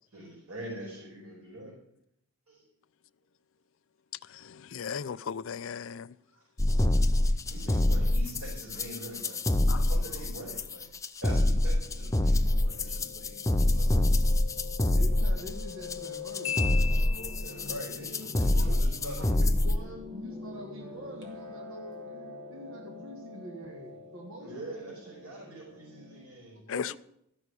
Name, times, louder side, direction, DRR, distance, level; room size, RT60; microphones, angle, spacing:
voice 1, 0.1-1.7 2.5-2.6 6.3-6.4 7.2-10.9 11.2-14.2 17.4-19.9 24.4-26.6, right 1 dB, 85° right, 5.4 m, -44 dB
voice 2, 4.3-6.1 9.7-9.8 26.7-27.0, left 6 dB, 65° left, 0.4 m, -36 dB
sound 1, 6.6-19.8, left 1 dB, 15° left, 0.5 m, -26 dB
Piano, 11.8-26.2, left 4 dB, 50° right, 3.1 m, -45 dB
voice 3, 14.9-16.7 18.5-24.9 26.7-27.0, equal, 70° right, 1.7 m, -45 dB
Marimba xylophone, 16.4-17.9, left 9 dB, 80° left, 1.2 m, -36 dB
13.5 x 6.3 x 8.3 m
head